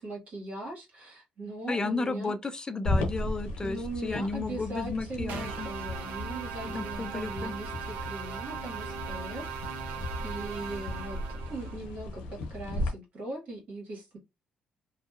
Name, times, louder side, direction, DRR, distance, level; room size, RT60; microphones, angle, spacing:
voice 1, 0.0-2.3 3.6-14.2, right 2 dB, 60° right, 1.3 m, -40 dB
voice 2, 1.7-5.7 6.6-7.5, left 3 dB, 25° left, 0.4 m, -33 dB
sound 1, 2.8-12.9, left 2 dB, 80° left, 0.8 m, -36 dB
sound 2, 5.3-11.8, right 7 dB, 80° right, 0.4 m, -39 dB
2.6 x 2.2 x 2.3 m
supercardioid pair, 55°, 3 cm